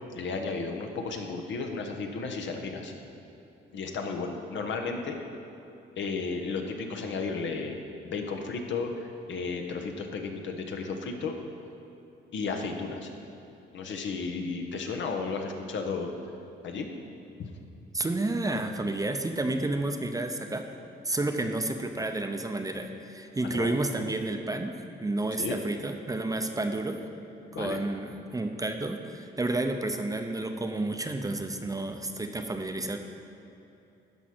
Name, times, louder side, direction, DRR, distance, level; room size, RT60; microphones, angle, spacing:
voice 1, 0.1-2.9 3.7-5.2 6.0-7.8 8.0-11.3 12.3-13.1 13.7-16.1 16.6-16.9 21.4-21.5 23.4-23.7 25.4-25.6 27.5-27.8, left 4 dB, 70° left, 3 dB, 1.1 m, -33 dB
voice 2, 17.9-20.6 21.0-24.7 25.0-27.0 27.5-33.0, right 2 dB, 15° right, 5 dB, 0.7 m, -30 dB
12.5 x 4.8 x 6.1 m, 2.9 s
cardioid pair, 90°, 20 cm